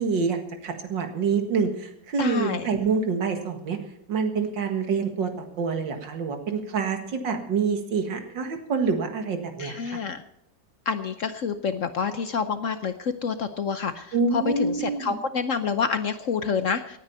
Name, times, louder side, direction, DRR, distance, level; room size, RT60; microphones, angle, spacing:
voice 1, 0.0-3.8 4.1-10.0 14.1-15.2, right 5 dB, 85° right, 6 dB, 2.4 m, -27 dB
voice 2, 2.2-2.7 9.6-10.2 10.9-17.0, left 5 dB, 55° left, 10 dB, 0.9 m, -28 dB
18.0 x 9.6 x 5.6 m, 0.75 s
omnidirectional pair, 2.0 m